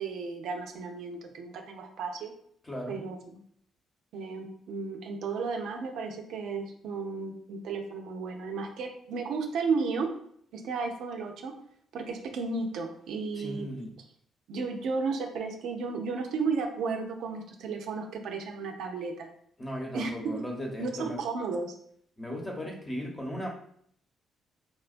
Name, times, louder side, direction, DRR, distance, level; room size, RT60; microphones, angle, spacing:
voice 1, 0.0-2.3 2.9-3.2 4.1-10.1 10.5-11.5 11.9-13.7 14.5-19.3 19.9-20.4 20.8-21.7, right 4 dB, 80° right, 3 dB, 0.5 m, -33 dB
voice 2, 2.6-3.0 13.3-13.9 19.6-21.2 22.2-23.5, equal, 20° left, 0 dB, 0.9 m, -36 dB
4.2 x 2.2 x 2.5 m, 0.65 s
cardioid pair, 90°, 0 cm